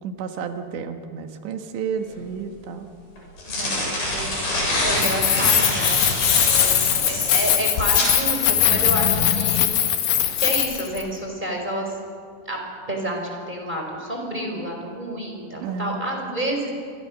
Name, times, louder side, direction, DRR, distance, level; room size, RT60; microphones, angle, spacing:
voice 1, 0.0-2.9 15.6-16.0, right 6 dB, 75° right, 5 dB, 3.7 m, -31 dB
sound 1, 2.1-2.2 3.2-8.2, left 1 dB, 50° left, 9.1 m, -25 dB
voice 2, 4.1-6.1 6.4-9.9 10.4-12.0 12.5-16.7, right 1 dB, 10° right, 1 dB, 4.8 m, -29 dB
Keys jangling, 4.9-11.0, left 11 dB, 70° left, 3.6 m, -21 dB
sound 2, 8.5-11.3 11.6-11.7, left 9 dB, 85° left, 1.9 m, -31 dB
28.5 x 24.5 x 6.5 m, 2.2 s
omnidirectional pair, 5.2 m